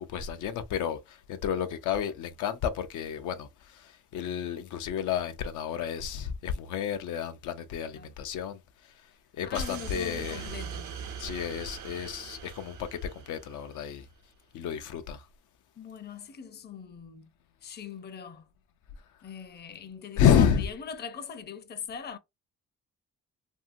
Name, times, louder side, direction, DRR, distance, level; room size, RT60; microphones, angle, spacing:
voice 1, 0.0-8.6 9.4-10.5 11.2-14.1 14.5-15.2 20.2-20.6, left 8 dB, 80° left, 0.5 m, -30 dB
voice 2, 9.5-11.0 15.8-17.3 17.6-18.5 19.2-22.2, left 6 dB, 35° left, 0.6 m, -41 dB
sound 1, 9.5-13.9, right 7 dB, 80° right, 0.7 m, -42 dB
2.7 x 2.7 x 2.6 m
cardioid pair, 90°, 30 cm